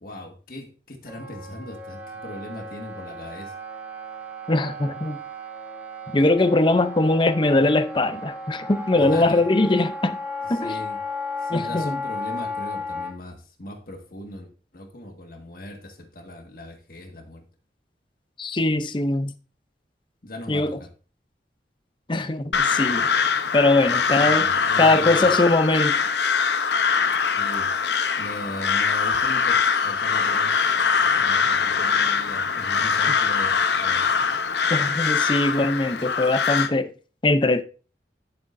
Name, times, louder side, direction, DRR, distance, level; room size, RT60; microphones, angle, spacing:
voice 1, 0.0-3.5 8.9-9.4 10.4-11.0 11.4-17.5 20.2-20.9 24.1-25.3 27.3-27.7 28.2-29.6 29.8-30.8 31.1-34.1, left 1 dB, 55° left, 1.8 m, -39 dB
Wind instrument woodwind instrument, 1.1-13.1, left 2 dB, 10° right, 1.3 m, -34 dB
voice 2, 4.5-5.2 6.1-10.2 10.5-10.8 11.5-12.0 18.4-19.3 20.5-20.8 22.1-23.1 23.5-24.5 24.8-26.0 34.7-36.9 37.2-37.6, left 2 dB, 25° left, 0.6 m, -21 dB
Crow, 22.5-36.7, left 6 dB, 75° left, 0.8 m, -22 dB
12.5 x 7.3 x 2.6 m
head